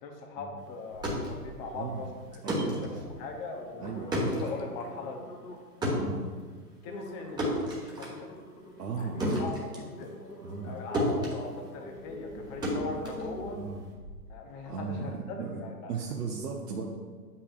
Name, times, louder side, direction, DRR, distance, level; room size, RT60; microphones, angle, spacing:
voice 1, 0.0-5.4 5.8-6.1 6.8-8.3 9.0-10.2 10.6-13.6 14.3-15.9, left 3 dB, 15° left, 3 dB, 0.5 m, -41 dB
sound 1, 0.8-10.7 10.9-13.9, equal, 10° right, 1.1 m, -33 dB
sound 2, 0.9-1.6 1.9-2.5 3.0-3.2 3.5-5.8 6.3-6.4 6.9-14.4 14.9-15.0, left 1 dB, 85° left, 1.2 m, -45 dB
voice 2, 1.7-2.1 2.4-2.9 3.8-4.1 5.9-6.3 8.8-9.3 10.4-10.8 13.5-13.8 14.7-15.6 15.9-17.0, right 5 dB, 75° right, -1 dB, 0.9 m, -36 dB
8.2 x 5.6 x 2.4 m, 1.5 s
figure-of-eight pair, 120°, 47 cm